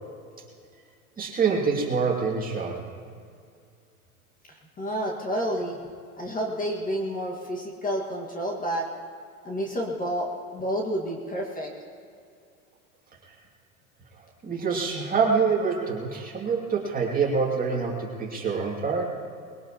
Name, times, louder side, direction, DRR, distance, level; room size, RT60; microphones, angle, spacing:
voice 1, 1.2-2.8 14.4-19.0, right 5 dB, 20° right, -1 dB, 2.5 m, -26 dB
voice 2, 4.8-5.8 6.2-8.9 9.4-11.7, equal, 20° left, 0 dB, 1.8 m, -29 dB
21.0 x 18.0 x 3.0 m, 2.3 s
hypercardioid pair, 105°, 44 cm